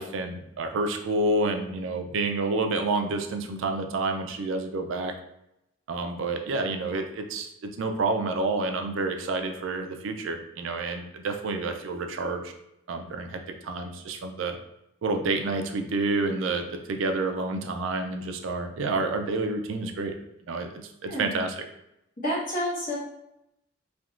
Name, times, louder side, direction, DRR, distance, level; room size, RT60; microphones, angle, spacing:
voice 1, 0.0-5.1 5.9-12.5 12.9-14.6 15.0-20.1 20.5-21.6, right 3 dB, 65° right, 5 dB, 0.4 m, -29 dB
voice 2, 22.2-23.0, equal, 40° left, -8 dB, 1.4 m, -29 dB
3.3 x 2.8 x 2.4 m, 0.85 s
head